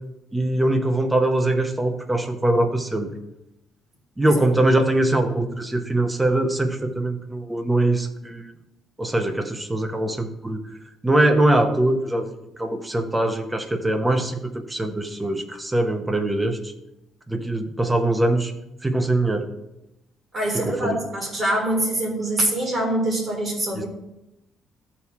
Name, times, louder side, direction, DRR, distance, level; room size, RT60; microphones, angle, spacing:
voice 1, 0.3-3.1 4.2-8.4 9.0-10.6 11.0-16.7 17.3-18.5 18.8-19.5 20.5-21.0 23.7-23.8, right 1 dB, 10° right, 6 dB, 0.9 m, -22 dB
voice 2, 20.3-23.9, right 1 dB, 30° right, -2 dB, 3.5 m, -24 dB
14.0 x 4.7 x 3.6 m, 0.89 s
cardioid pair, 125°, 0 cm